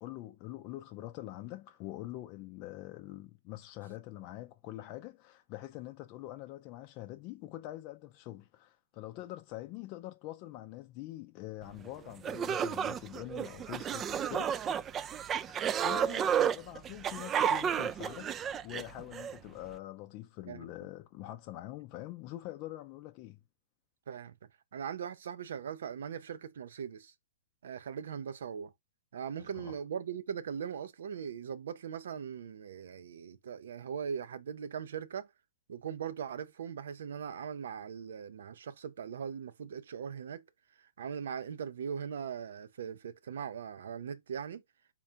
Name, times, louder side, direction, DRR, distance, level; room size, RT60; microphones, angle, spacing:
voice 1, 0.0-14.7 15.5-23.4 29.4-29.7, left 15 dB, 40° left, 0.4 m, -45 dB
sound 1, 11.8-11.9 12.2-19.3, right 8 dB, 25° right, 0.3 m, -32 dB
voice 2, 24.7-27.1 27.6-28.7 29.1-35.3 35.7-40.5 40.8-44.6, right 7 dB, 70° right, 0.5 m, -40 dB
3.8 x 2.3 x 4.4 m
hypercardioid pair, 115°, 0 cm